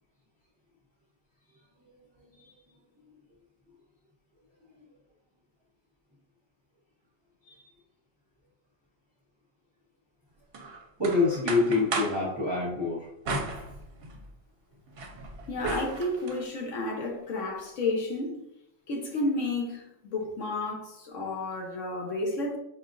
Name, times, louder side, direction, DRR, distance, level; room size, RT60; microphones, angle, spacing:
voice 1, 2.2-2.5 7.4-7.7 11.0-13.1, left 3 dB, 25° right, 0.7 m, -27 dB
sound 1, 10.5-12.3 13.2-14.3 14.7-16.4, right 3 dB, 60° right, 0.7 m, -35 dB
voice 2, 15.5-18.4 18.9-22.6, left 2 dB, 80° left, 1.2 m, -31 dB
4.8 x 2.4 x 2.4 m
omnidirectional pair, 1.3 m